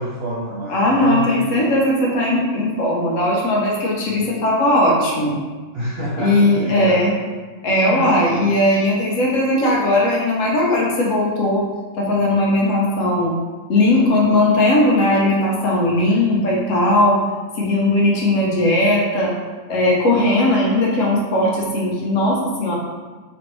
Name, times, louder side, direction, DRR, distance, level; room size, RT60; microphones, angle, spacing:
voice 1, 0.0-1.3 5.7-7.1 7.9-8.1, right 1 dB, 70° right, -7 dB, 0.6 m, -27 dB
voice 2, 0.7-5.4 6.2-7.1 7.6-11.7 11.9-13.3 13.7-17.2 17.5-19.3 19.7-22.8, left 1 dB, 65° left, -3 dB, 1.0 m, -18 dB
3.0 x 2.6 x 2.9 m, 1.4 s
omnidirectional pair, 1.5 m